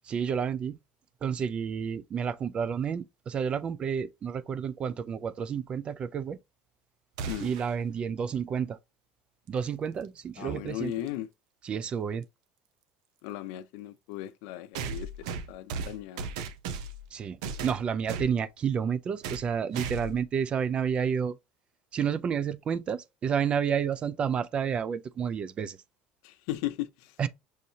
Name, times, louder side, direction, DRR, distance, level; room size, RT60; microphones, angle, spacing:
voice 1, 0.1-0.8 1.2-6.4 7.4-8.8 9.5-10.9 11.6-12.3 17.1-21.4 21.9-25.8 27.2-27.3, right 7 dB, 35° right, 0.4 m, -30 dB
sound 1, 7.2-7.7 9.9-10.0 11.1-11.2 14.7-17.1 17.4-18.3 19.2-19.5 19.7-20.2, right 5 dB, 80° right, 0.7 m, -36 dB
voice 2, 10.4-11.3 13.2-16.3 26.2-27.1, left 14 dB, 75° left, 0.5 m, -37 dB
6.3 x 2.7 x 2.7 m
supercardioid pair, 100°, 3 cm